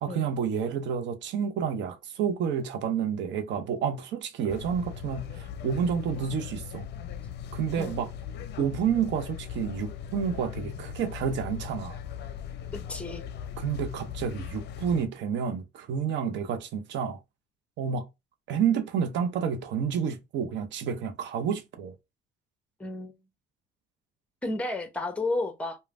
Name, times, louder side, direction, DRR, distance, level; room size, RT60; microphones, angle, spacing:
voice 1, 0.0-6.9 7.5-8.1 8.6-12.0 13.6-17.2 17.8-18.1 18.5-21.9, right 7 dB, 65° right, 0.7 m, -29 dB
sound 1, 4.5-15.1, left 8 dB, 60° left, 0.5 m, -39 dB
voice 2, 12.7-13.2 22.8-23.2 24.4-25.8, left 2 dB, 5° left, 0.8 m, -32 dB
3.1 x 2.2 x 2.4 m
supercardioid pair, 75°, 20 cm